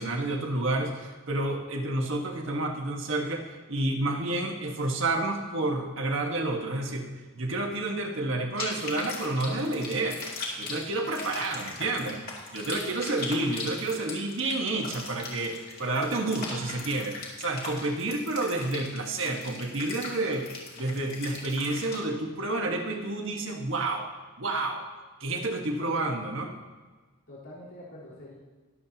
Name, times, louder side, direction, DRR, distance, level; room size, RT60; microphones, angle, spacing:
voice 1, 0.0-7.1 7.3-10.2 10.6-12.2 12.5-20.5 20.8-24.1 24.4-24.8 25.2-26.5, right 2 dB, 65° right, 2 dB, 1.5 m, -30 dB
sound 1, 8.6-22.0, left 3 dB, 45° left, 2.5 m, -39 dB
voice 2, 25.8-26.2 27.3-28.3, left 1 dB, 80° left, -9 dB, 3.9 m, -45 dB
22.0 x 7.6 x 2.9 m, 1.3 s
head